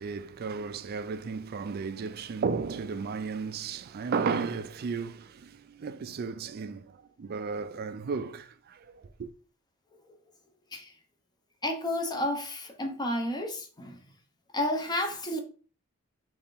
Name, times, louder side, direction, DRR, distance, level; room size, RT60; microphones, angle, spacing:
voice 1, 0.0-9.3, right 5 dB, 50° right, 0.4 m, -34 dB
voice 2, 11.6-14.0 14.5-15.4, left 1 dB, 20° left, 0.7 m, -31 dB
3.5 x 3.3 x 4.1 m
head